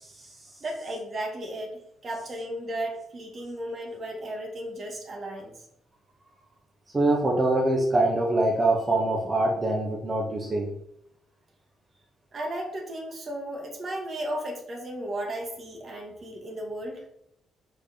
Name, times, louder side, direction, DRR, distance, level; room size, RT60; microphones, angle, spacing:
voice 1, 0.6-5.5 12.3-17.0, right 1 dB, 50° right, 1 dB, 1.9 m, -35 dB
voice 2, 6.9-10.7, right 2 dB, 30° right, -1 dB, 1.5 m, -24 dB
4.9 x 4.9 x 4.5 m, 0.75 s
hypercardioid pair, 50°, 0 cm